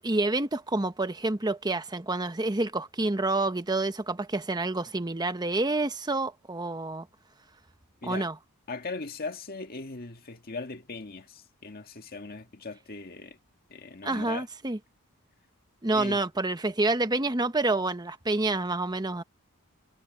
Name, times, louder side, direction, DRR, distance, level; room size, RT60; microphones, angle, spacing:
voice 1, 0.0-7.1 8.0-8.4 14.0-14.8 15.8-19.2, right 2 dB, 20° right, 1.0 m, -28 dB
voice 2, 8.7-13.4 13.7-14.4 15.9-16.2, left 3 dB, 45° left, 1.7 m, -39 dB
head